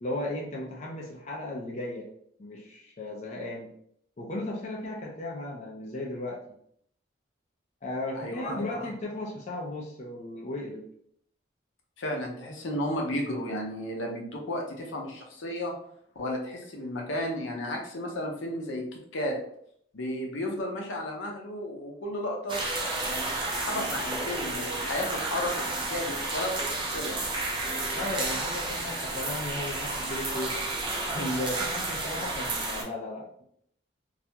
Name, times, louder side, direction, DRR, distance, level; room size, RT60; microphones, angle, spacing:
voice 1, 0.0-2.1 2.4-3.7 4.2-6.4 7.8-10.9 27.9-30.6 31.1-33.4, left 1 dB, 35° left, -3 dB, 0.4 m, -35 dB
voice 2, 8.2-8.6 12.0-15.7 16.2-19.4 19.9-22.6 23.0-27.2, left 1 dB, 80° left, 1 dB, 0.6 m, -33 dB
sound 1, 22.5-32.8, right 2 dB, 25° right, 0.4 m, -31 dB
2.4 x 2.2 x 2.7 m, 0.67 s
head